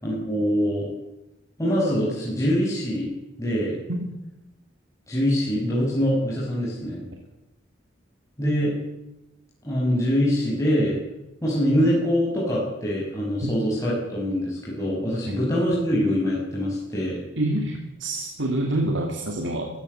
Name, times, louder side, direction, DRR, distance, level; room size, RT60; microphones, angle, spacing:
voice 1, 0.0-0.9 1.6-3.1 3.4-3.8 5.1-7.0 8.4-8.7 9.6-11.0 11.4-17.2, equal, 15° left, -5 dB, 6.2 m, -24 dB
voice 2, 17.4-19.7, right 1 dB, 80° right, 2 dB, 3.1 m, -26 dB
23.0 x 15.5 x 8.1 m, 0.92 s
head